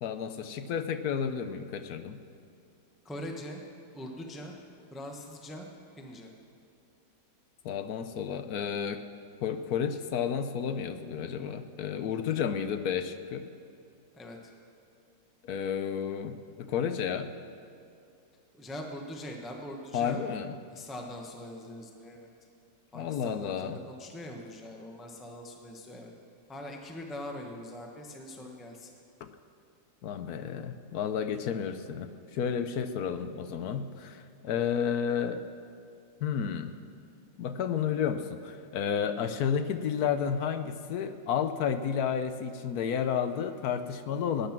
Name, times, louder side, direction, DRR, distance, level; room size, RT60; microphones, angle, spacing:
voice 1, 0.0-2.2 7.6-9.0 9.4-13.5 15.4-17.3 19.9-20.5 22.9-23.8 30.0-35.4 36.2-36.8 37.4-44.5, left 7 dB, 65° left, 10 dB, 1.1 m, -31 dB
voice 2, 3.0-3.6 3.9-4.5 4.9-5.7 6.0-6.3 12.3-12.4 14.1-14.4 18.5-20.2 20.7-22.3 22.9-26.1 26.5-28.9, left 1 dB, ahead, 1 dB, 1.0 m, -42 dB
19.5 x 10.0 x 6.0 m, 2.6 s
omnidirectional pair, 1.9 m